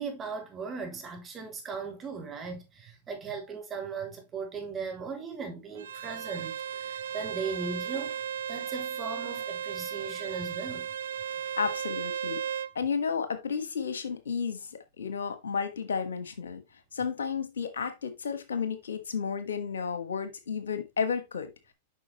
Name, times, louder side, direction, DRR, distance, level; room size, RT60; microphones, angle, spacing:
voice 1, 0.0-8.2 8.5-10.9, right 5 dB, 25° right, 3.3 m, -38 dB
Bowed string instrument, 5.8-12.7, right 8 dB, 70° right, 0.5 m, -35 dB
voice 2, 11.6-12.4 12.7-16.6 16.9-21.5, left 6 dB, 85° left, 1.3 m, -32 dB
8.3 x 5.8 x 3.0 m
hypercardioid pair, 105°, 0 cm